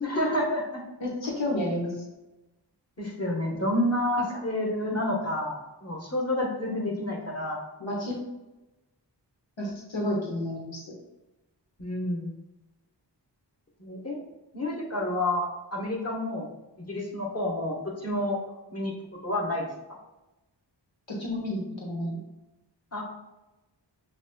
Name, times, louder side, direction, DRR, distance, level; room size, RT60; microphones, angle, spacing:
voice 1, 0.0-0.8 3.0-7.6 11.8-12.3 13.8-14.2 14.5-16.5 16.8-18.4 18.7-18.9 19.2-19.7 22.9-23.0, left 1 dB, 35° left, -2 dB, 1.1 m, -29 dB
voice 2, 1.0-2.0 7.8-8.1 9.6-10.9 21.1-22.2, left 1 dB, 85° left, -3 dB, 1.1 m, -31 dB
6.4 x 3.0 x 2.2 m, 1.0 s
wide cardioid pair, 50°, 44 cm